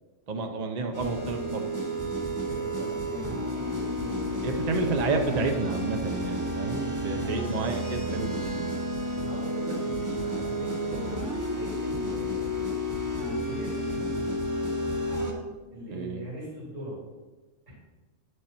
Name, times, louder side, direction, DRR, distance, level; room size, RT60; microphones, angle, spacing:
voice 1, 0.3-1.7 4.4-8.6 15.9-16.2, right 4 dB, 45° right, 4 dB, 0.6 m, -30 dB
sound 1, 0.9-15.3, equal, 15° right, 1.0 m, -31 dB
voice 2, 2.5-5.0 7.1-7.7 9.2-12.6 13.2-14.3 15.7-17.0 17.7-17.8, right 1 dB, 90° right, -6 dB, 3.4 m, -41 dB
9.9 x 6.4 x 4.3 m, 1.2 s
omnidirectional pair, 1.3 m